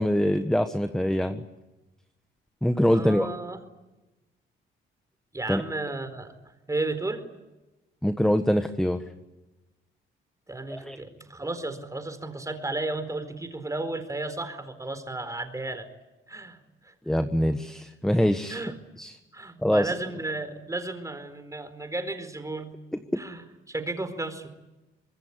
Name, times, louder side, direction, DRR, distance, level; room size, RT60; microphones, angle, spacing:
voice 1, 0.0-1.4 2.6-3.3 5.5-5.6 8.0-9.0 10.7-11.0 17.1-18.6 19.0-19.2 19.6-19.9, equal, 5° left, 8 dB, 1.4 m, -24 dB
voice 2, 2.9-3.6 5.3-6.3 6.7-7.2 10.5-15.9 16.3-16.9 18.5-18.8 19.3-22.7 23.2-24.5, right 2 dB, 15° right, 9 dB, 4.4 m, -33 dB
25.5 x 21.5 x 9.9 m, 1.1 s
cardioid pair, 90°, 20 cm